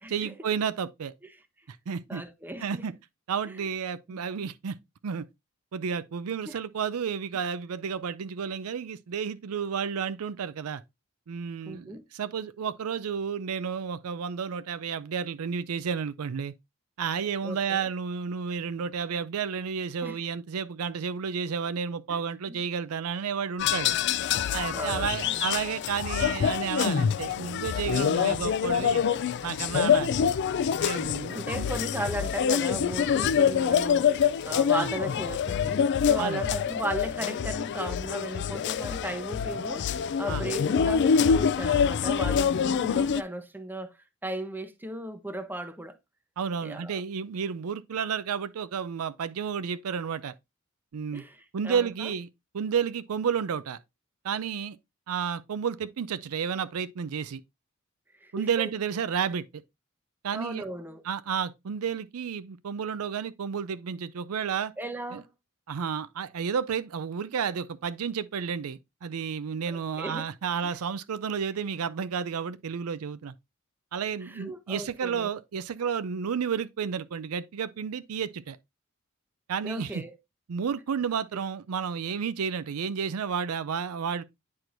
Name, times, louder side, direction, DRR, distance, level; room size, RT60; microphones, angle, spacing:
voice 1, 0.1-1.1 1.7-2.2 2.6-2.9 3.3-4.8 5.0-5.2 5.7-10.8 11.3-16.5 17.0-24.0 24.5-29.0 29.4-30.1 30.8-31.7 34.7-34.9 36.2-36.4 40.3-40.5 46.4-50.3 50.9-51.2 51.5-52.3 52.5-53.8 54.2-54.8 55.1-57.4 58.3-59.6 60.2-60.6 61.0-64.7 65.1-65.2 65.7-73.3 73.9-78.6 79.5-80.0 80.5-84.2, right 6 dB, 90° right, 0.5 m, -31 dB
voice 2, 2.1-2.9 3.4-3.6 4.1-4.2 6.4-6.6 11.7-12.0 17.4-17.9 20.0-20.2 22.1-22.2 22.5-22.6 24.7-25.4 28.2-28.6 30.0-30.3 31.3-44.0 44.2-46.0 46.6-47.0 51.1-52.1 58.2-58.7 59.1-59.2 60.3-61.0 64.8-65.3 69.7-70.3 70.6-70.8 74.2-75.3 79.6-80.1, right 1 dB, 10° right, 0.7 m, -36 dB
sound 1, 23.6-43.2, left 7 dB, 55° left, 0.3 m, -26 dB
9.6 x 4.5 x 2.5 m
head